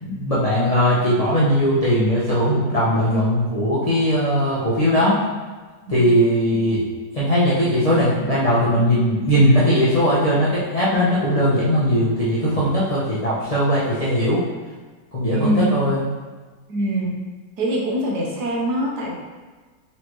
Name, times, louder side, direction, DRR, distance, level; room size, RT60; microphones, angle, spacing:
voice 1, 0.0-5.2 5.9-6.8 7.1-14.4 15.1-16.0, equal, 75° left, -9 dB, 0.3 m, -19 dB
voice 2, 15.3-15.8 16.7-17.3 17.6-19.1, right 1 dB, 65° right, -2 dB, 1.3 m, -23 dB
4.1 x 3.2 x 3.0 m, 1.3 s
omnidirectional pair, 2.0 m